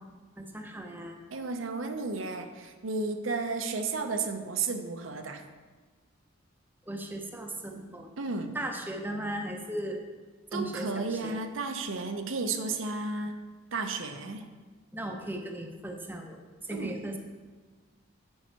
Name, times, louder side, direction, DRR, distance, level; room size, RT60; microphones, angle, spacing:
voice 1, 0.4-1.2 6.9-8.1 8.5-10.0 10.5-11.4 14.9-17.2, right 1 dB, 10° right, 3 dB, 0.6 m, -37 dB
voice 2, 1.3-5.4 8.2-8.6 10.5-13.4 13.7-14.4 16.7-17.0, right 3 dB, 80° right, 6 dB, 0.7 m, -33 dB
8.8 x 5.5 x 4.5 m, 1.4 s
head